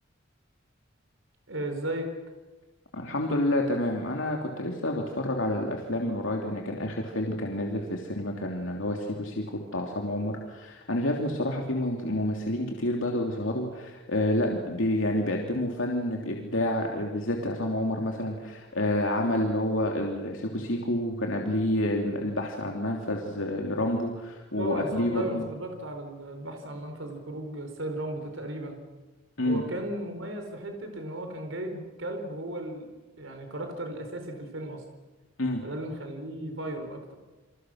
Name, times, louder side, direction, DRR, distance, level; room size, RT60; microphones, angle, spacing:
voice 1, 1.5-2.1 24.5-28.8 29.4-32.9 33.2-34.8 35.6-37.1, right 1 dB, 70° right, 4 dB, 4.6 m, -35 dB
voice 2, 2.9-25.4 29.4-29.6 35.4-35.6, left 1 dB, 75° left, 1 dB, 3.1 m, -29 dB
29.5 x 26.5 x 6.5 m, 1.2 s
head